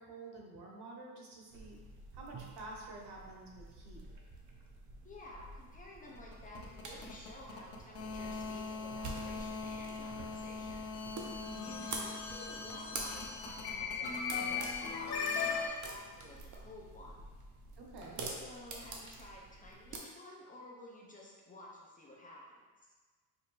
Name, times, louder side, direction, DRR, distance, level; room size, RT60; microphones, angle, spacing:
voice 1, 0.0-1.8 2.1-4.1 11.4-11.8 17.8-18.2, right 2 dB, 90° right, -1 dB, 1.0 m, -49 dB
sound 1, 1.5-20.0, right 3 dB, 50° right, 0.7 m, -48 dB
voice 2, 5.0-10.9 11.6-17.3 18.3-22.9, left 1 dB, 20° left, -4 dB, 0.7 m, -53 dB
sound 2, 6.1-15.7, left 5 dB, 80° left, 0.7 m, -39 dB
5.0 x 2.7 x 3.2 m, 1.4 s
cardioid pair, 140°, 39 cm